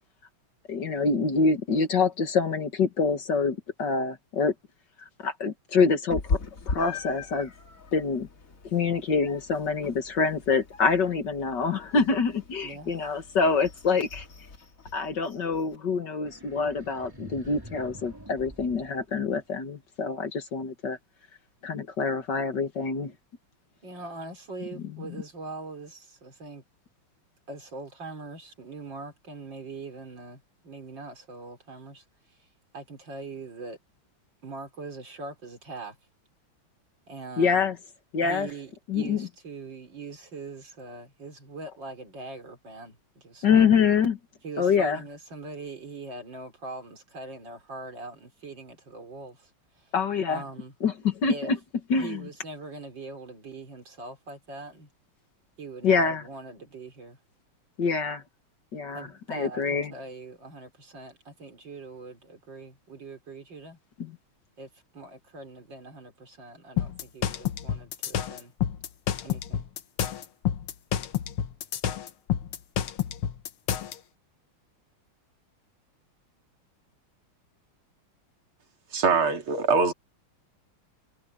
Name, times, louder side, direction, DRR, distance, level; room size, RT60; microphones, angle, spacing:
voice 1, 0.7-4.5 5.0-6.4 6.7-7.5 7.9-8.3 8.6-14.3 14.9-21.0 21.6-23.1 37.4-37.8 38.1-38.5 38.9-39.3 43.4-44.2 44.6-45.0 49.9-50.4 50.8-51.6 51.9-52.2 55.8-56.2 57.8-58.2 58.7-59.9 64.0-64.1, left 5 dB, 55° left, 2.2 m, -25 dB
Meow, 6.1-15.8, left 4 dB, 40° left, 2.3 m, -38 dB
voice 2, 12.6-13.0 23.8-26.6 27.5-32.4 32.7-33.8 34.4-36.0 37.1-37.7 38.2-43.9 44.4-49.5 49.8-49.9 50.3-50.7 51.3-51.5 52.0-54.9 55.6-57.2 58.9-63.8 64.6-68.5 69.2-69.6, right 3 dB, 60° right, 4.8 m, -42 dB
sound 1, 16.3-19.7, right 1 dB, 10° right, 3.2 m, -47 dB
sound 2, 66.8-74.0, left 10 dB, 80° left, 2.0 m, -29 dB
voice 3, 78.9-79.9, right 4 dB, 80° right, 3.3 m, -23 dB
omnidirectional pair, 2.3 m